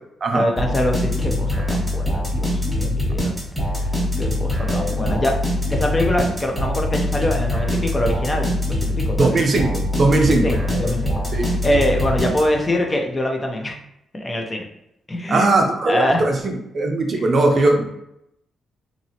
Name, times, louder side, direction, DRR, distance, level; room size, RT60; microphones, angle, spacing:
voice 1, 0.3-3.3 3.7-3.9 4.2-9.4 10.3-13.7 14.1-14.7 15.1-16.2, left 1 dB, 20° left, 2 dB, 0.6 m, -24 dB
sound 1, 0.6-12.8, left 1 dB, 5° left, 1.4 m, -23 dB
voice 2, 9.2-10.6 11.3-11.5 15.3-17.9, right 2 dB, 45° right, 3 dB, 0.5 m, -19 dB
2.9 x 2.7 x 2.8 m, 0.81 s
cardioid pair, 110°, 0 cm